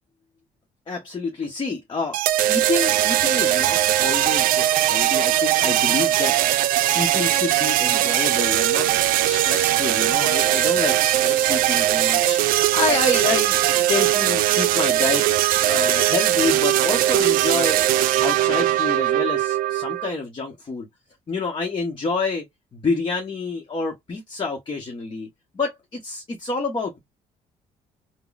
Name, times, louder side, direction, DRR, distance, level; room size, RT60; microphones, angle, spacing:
voice 1, 0.9-2.2 2.5-6.4 6.9-8.9 9.2-13.6 13.9-15.2 15.6-17.8 18.2-20.9 21.3-22.4 22.7-25.3 25.5-27.0, left 3 dB, 35° left, 1.0 m, -28 dB
sound 1, 2.1-20.1, right 14 dB, 75° right, 0.4 m, -20 dB
3.6 x 2.2 x 2.3 m
cardioid pair, 85°, 15 cm